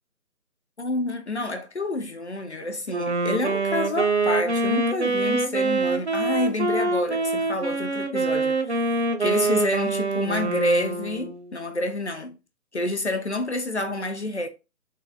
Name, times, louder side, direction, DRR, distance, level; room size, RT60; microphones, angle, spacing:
voice 1, 0.8-12.4 12.7-14.5, left 2 dB, 50° left, 0.5 m, -28 dB
Wind instrument woodwind instrument, 2.9-11.5, right 3 dB, 50° right, 0.5 m, -25 dB
3.8 x 2.1 x 4.3 m
hypercardioid pair, 175°, 45 cm